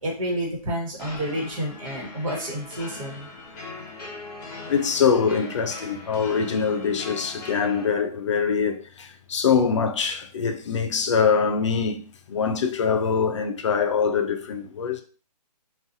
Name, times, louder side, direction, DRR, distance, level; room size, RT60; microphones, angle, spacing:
voice 1, 0.0-3.3, right 1 dB, 55° right, 1.2 m, -29 dB
sound 1, 1.0-7.8, left 3 dB, 30° left, 0.9 m, -40 dB
voice 2, 4.7-12.0 12.3-15.0, left 6 dB, 45° left, 0.4 m, -23 dB
2.5 x 2.3 x 2.6 m
hypercardioid pair, 155°, 21 cm